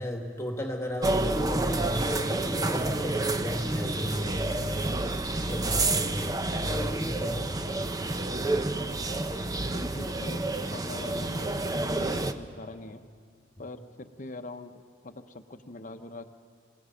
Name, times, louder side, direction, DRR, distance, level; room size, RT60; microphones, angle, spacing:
voice 1, 0.0-7.7, equal, 15° left, 2 dB, 1.8 m, -35 dB
sound 1, 1.0-12.3, right 2 dB, 20° right, 0.6 m, -29 dB
voice 2, 9.7-13.0 13.6-16.3, left 2 dB, 40° left, 7 dB, 0.9 m, -43 dB
27.0 x 18.0 x 5.8 m, 2.1 s
head